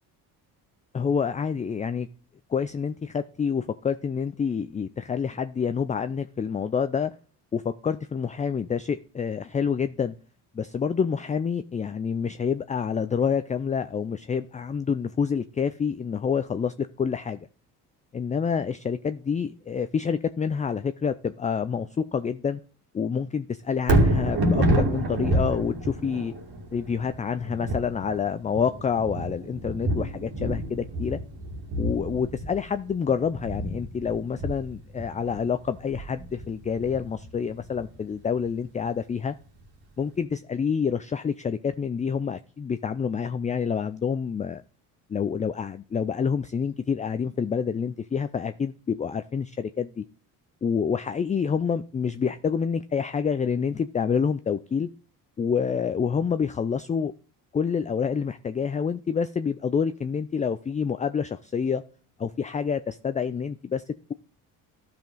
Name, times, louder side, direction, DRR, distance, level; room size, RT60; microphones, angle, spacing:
voice 1, 0.9-2.1 2.5-7.1 7.5-10.2 10.5-17.5 18.1-22.6 22.9-26.3 26.7-31.2 31.8-39.3 40.0-44.6 45.1-50.0 50.6-54.9 55.4-57.1 57.5-61.8 62.2-63.8, left 6 dB, 15° left, 0.4 m, -27 dB
Thunder, 23.8-38.0 38.4-38.5, right 1 dB, 55° right, 2.5 m, -28 dB
12.5 x 5.2 x 3.8 m
hypercardioid pair, 60°, 47 cm